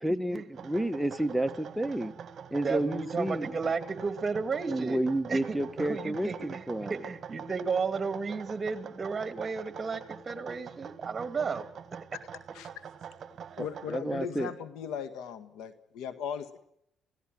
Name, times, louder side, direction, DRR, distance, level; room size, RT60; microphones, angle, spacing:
voice 1, 0.0-2.1 2.5-3.5 4.7-6.9 13.9-14.5, right 1 dB, ahead, 8 dB, 1.4 m, -30 dB
sound 1, 0.5-14.0, right 7 dB, 55° right, 1.4 m, -45 dB
voice 2, 2.6-5.0 5.3-11.7, right 5 dB, 35° right, 10 dB, 2.4 m, -33 dB
voice 3, 13.6-16.6, left 7 dB, 85° left, 11 dB, 1.8 m, -38 dB
28.5 x 16.5 x 6.3 m, 0.76 s
cardioid pair, 85°, 0 cm